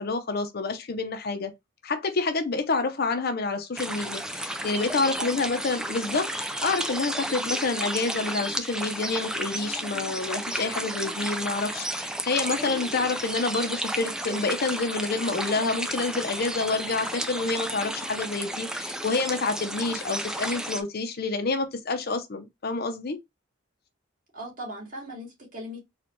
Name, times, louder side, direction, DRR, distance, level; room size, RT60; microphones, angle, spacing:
voice 1, 0.0-1.5 1.8-23.2, left 3 dB, 55° left, 0.6 m, -28 dB
sound 1, 3.8-20.8, right 1 dB, 5° right, 0.4 m, -32 dB
voice 2, 5.2-5.6 7.3-7.5 24.3-25.8, equal, 45° right, 2.1 m, -39 dB
4.2 x 2.4 x 3.0 m
head